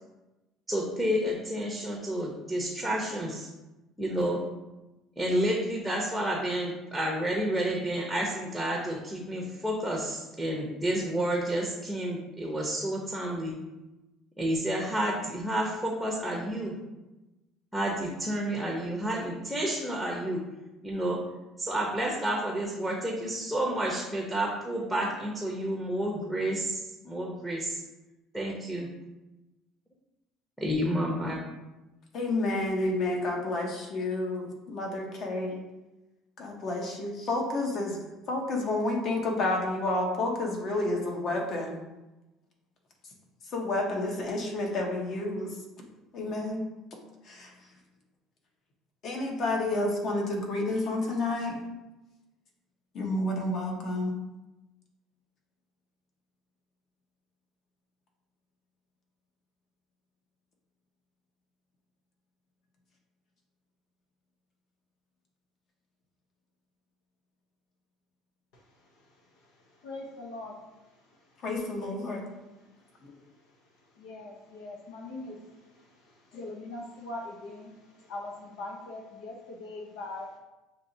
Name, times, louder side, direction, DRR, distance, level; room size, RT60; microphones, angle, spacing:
voice 1, 0.7-3.5 4.0-4.4 5.2-13.5 14.4-16.7 17.7-20.4 20.8-21.2 21.6-27.8 28.3-28.9 30.6-31.4, right 1 dB, ahead, -2 dB, 0.7 m, -30 dB
voice 2, 32.1-35.6 36.4-38.0 38.3-41.8 43.5-45.5 46.1-46.6 47.3-47.5 49.0-51.6 52.9-54.1 71.4-72.2, left 2 dB, 50° left, 1 dB, 1.0 m, -30 dB
voice 3, 68.5-71.2 72.1-72.2 72.5-72.6 73.9-80.4, left 2 dB, 90° left, -1 dB, 0.8 m, -42 dB
6.7 x 2.9 x 2.7 m, 1.0 s
cardioid pair, 130°, 0 cm